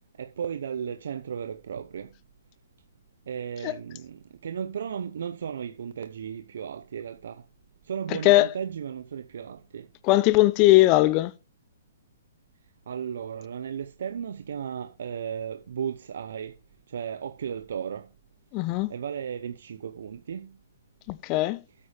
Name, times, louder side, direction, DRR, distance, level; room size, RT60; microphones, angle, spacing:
voice 1, 0.2-2.1 3.3-7.4 7.8-9.9 12.9-16.5 16.9-18.1 18.9-20.6, right 7 dB, 70° right, 0.7 m, -35 dB
voice 2, 10.1-11.3 18.5-18.9 21.1-21.6, left 18 dB, 30° left, 0.4 m, -19 dB
8.8 x 8.5 x 3.3 m
hypercardioid pair, 145°, 0 cm